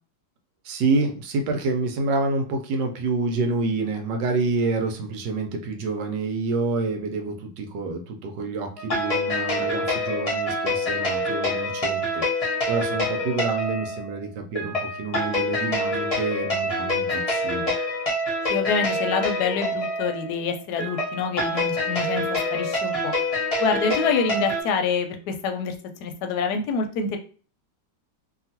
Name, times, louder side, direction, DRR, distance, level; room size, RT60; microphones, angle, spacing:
voice 1, 0.6-17.7, right 3 dB, 75° right, 5 dB, 1.2 m, -28 dB
sound 1, 8.8-24.6, left 1 dB, 30° left, 0.7 m, -26 dB
voice 2, 18.5-22.3 22.5-23.1 23.6-25.7 26.0-27.2, left 5 dB, 70° left, 5 dB, 1.0 m, -26 dB
2.9 x 2.6 x 2.7 m, 0.39 s
omnidirectional pair, 2.0 m